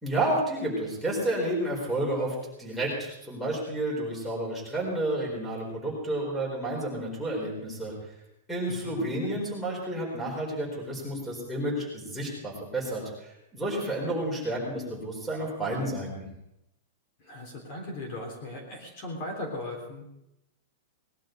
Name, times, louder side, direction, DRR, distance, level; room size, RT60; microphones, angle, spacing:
voice 1, 0.0-7.9 8.5-16.3, right 1 dB, ahead, -1 dB, 4.4 m, -31 dB
voice 2, 8.7-9.4 17.2-20.0, left 1 dB, 35° left, 1 dB, 3.6 m, -38 dB
19.5 x 12.0 x 5.2 m, 0.85 s
supercardioid pair, 170°, 0 cm